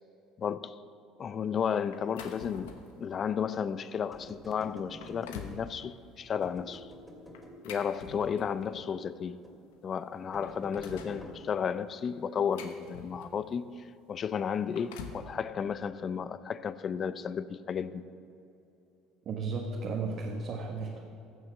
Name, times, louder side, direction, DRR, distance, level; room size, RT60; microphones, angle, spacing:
voice 1, 0.4-0.8 1.2-6.9 7.6-9.4 9.8-18.0, left 7 dB, 40° left, 15 dB, 0.5 m, -33 dB
sound 1, 1.9-3.0 3.5-3.7 4.3-4.4 4.8-5.6 7.3-8.7 9.7-9.8 10.1-11.2 12.1-13.5 14.5-15.3, left 6 dB, 85° left, 1.0 m, -46 dB
sound 2, 4.1-5.8 6.4-7.6 8.0-9.0 9.4-9.6 10.3-11.4, equal, 5° left, 2.5 m, -49 dB
voice 2, 19.2-21.1, right 4 dB, 55° right, -1 dB, 1.5 m, -34 dB
15.0 x 7.2 x 6.4 m, 2.8 s
supercardioid pair, 85°, 0 cm